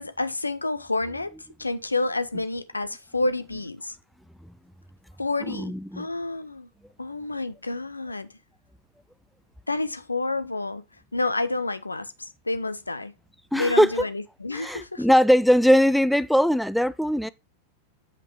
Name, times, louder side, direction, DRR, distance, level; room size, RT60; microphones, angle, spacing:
voice 1, 0.0-1.3 1.6-4.0 5.2-6.7 7.0-8.3 9.7-10.8 11.1-12.1 12.5-13.1 13.5-15.1, left 2 dB, 80° left, 0.8 m, -29 dB
voice 2, 5.5-6.0 13.5-14.0 14.5-17.3, equal, ahead, 0.4 m, -20 dB
7.6 x 5.8 x 4.7 m
figure-of-eight pair, 90°, 0 cm